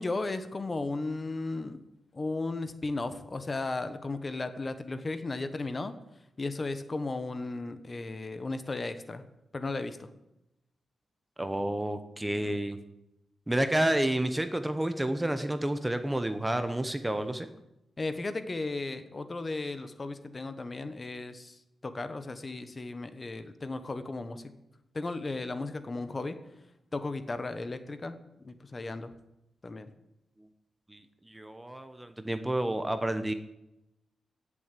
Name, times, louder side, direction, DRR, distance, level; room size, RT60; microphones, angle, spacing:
voice 1, 0.0-1.8 2.1-5.9 6.4-9.2 9.5-10.1 12.4-12.6 18.0-24.4 24.9-26.4 26.9-28.2 28.4-29.1 29.6-29.9, left 3 dB, 30° left, 10 dB, 1.2 m, -35 dB
voice 2, 11.4-12.8 13.5-17.5 30.9-33.3, right 1 dB, 10° right, 9 dB, 1.0 m, -30 dB
17.0 x 7.4 x 8.4 m, 0.89 s
wide cardioid pair, 120°, 0 cm